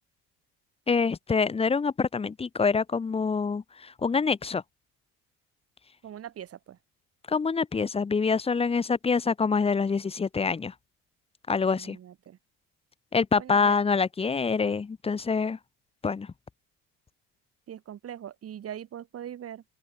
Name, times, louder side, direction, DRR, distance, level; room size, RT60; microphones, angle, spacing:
voice 1, 0.9-4.6 7.3-10.7 11.5-12.0 13.1-15.6 16.0-16.3, left 5 dB, 20° left, 0.8 m, -26 dB
voice 2, 6.0-6.8 11.7-12.4 13.4-13.8 17.7-19.6, right 10 dB, 45° right, 3.3 m, -41 dB
open air
supercardioid pair, 100°, 32 cm